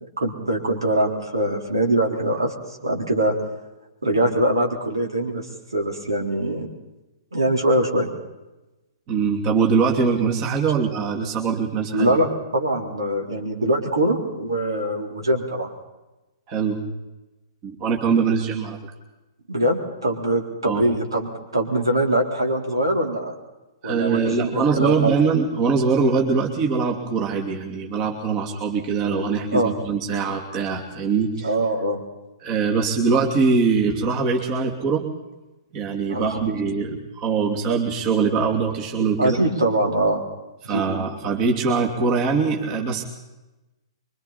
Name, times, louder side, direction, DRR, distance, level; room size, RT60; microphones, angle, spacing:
voice 1, 0.2-2.5 2.8-3.4 4.0-5.5 5.7-6.7 7.3-8.1 11.9-15.7 19.5-23.3 23.8-25.2 29.5-29.7 31.4-32.0 36.1-36.4 39.2-40.2 40.6-40.8, right 1 dB, 70° right, 1 dB, 4.1 m, -22 dB
voice 2, 9.1-12.1 16.5-16.8 17.6-18.8 20.7-20.8 23.8-31.5 32.4-35.1 35.7-39.4 40.6-43.0, right 5 dB, 30° right, 1 dB, 2.9 m, -22 dB
26.0 x 24.0 x 4.4 m, 1.0 s
figure-of-eight pair, 115°, 2 cm